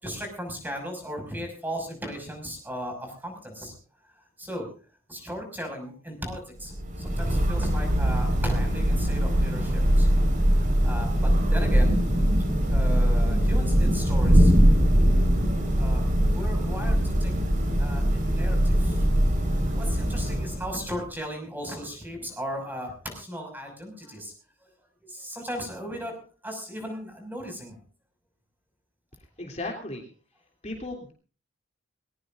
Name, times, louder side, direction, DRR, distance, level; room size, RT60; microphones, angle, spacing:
voice 1, 0.0-3.7 4.4-4.7 5.1-10.1 10.5-12.0 12.7-14.5 15.8-17.3 17.8-19.1 19.7-24.3 25.0-26.1 26.4-27.7, equal, 10° right, 3 dB, 5.9 m, -36 dB
Thunder / Rain, 6.6-21.0, equal, 40° right, 4.7 m, -22 dB
voice 2, 29.4-30.1 30.6-31.1, left 2 dB, 30° left, 2 dB, 3.1 m, -35 dB
20.5 x 20.5 x 2.6 m, 0.38 s
head